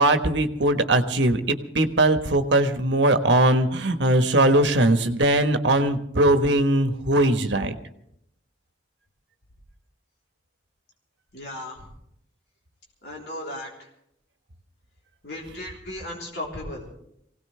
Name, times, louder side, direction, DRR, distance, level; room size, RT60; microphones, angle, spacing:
voice 1, 0.0-7.7, right 1 dB, 80° right, 7 dB, 1.3 m, -20 dB
voice 2, 11.3-11.8 13.0-13.9 15.2-16.9, left 1 dB, 60° left, -2 dB, 3.7 m, -35 dB
24.5 x 17.5 x 3.4 m, 0.74 s
head